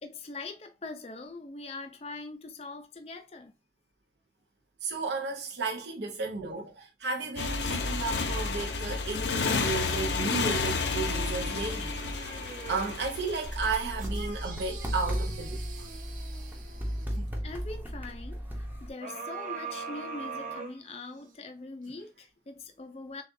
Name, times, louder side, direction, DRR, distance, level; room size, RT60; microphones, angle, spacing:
voice 1, 0.0-3.5 17.4-23.2, left 3 dB, 35° left, 0.5 m, -42 dB
voice 2, 4.8-12.3 12.7-15.9, right 4 dB, 75° right, 0.8 m, -34 dB
Motorcycle, 7.4-13.7, left 4 dB, 80° left, 0.7 m, -31 dB
sound 1, 9.9-13.1 13.6-17.3 19.0-21.3 21.9-22.0, right 4 dB, 45° right, 0.9 m, -43 dB
sound 2, 13.4-18.9, equal, 10° right, 0.7 m, -35 dB
6.5 x 2.4 x 2.6 m
head